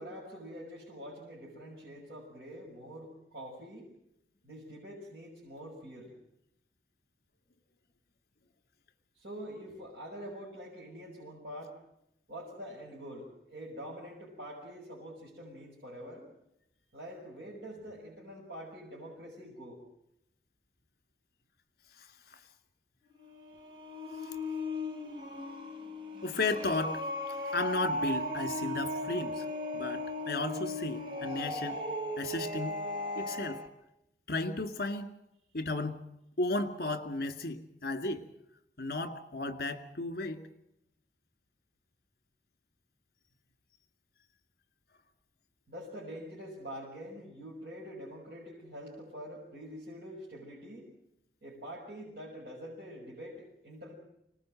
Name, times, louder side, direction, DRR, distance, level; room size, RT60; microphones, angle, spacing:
voice 1, 0.0-3.9 4.4-6.1 9.1-11.7 12.3-16.3 16.9-19.8 45.7-50.9 51.4-53.9, equal, 60° right, -5 dB, 6.1 m, -45 dB
sound 1, 23.1-33.7, left 1 dB, 30° right, 3.5 m, -37 dB
voice 2, 26.2-27.0 27.3-29.4 29.7-31.8 32.2-32.8 33.2-33.6 34.3-35.1 35.5-36.0 36.4-38.2 38.8-40.4, left 2 dB, 55° left, 8 dB, 2.2 m, -34 dB
25.0 x 19.5 x 7.8 m, 0.81 s
head